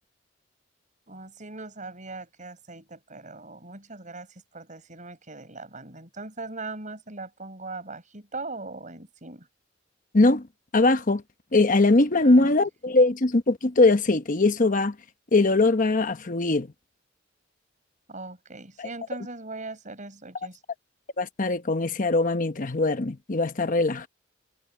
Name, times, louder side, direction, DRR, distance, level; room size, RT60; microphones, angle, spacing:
voice 1, 1.1-9.5 12.2-12.6 18.1-20.6, right 3 dB, 40° right, 6.0 m, -40 dB
voice 2, 10.7-11.2 11.5-15.0 15.3-16.7 18.8-18.9 21.2-24.1, left 2 dB, 45° left, 1.0 m, -21 dB
head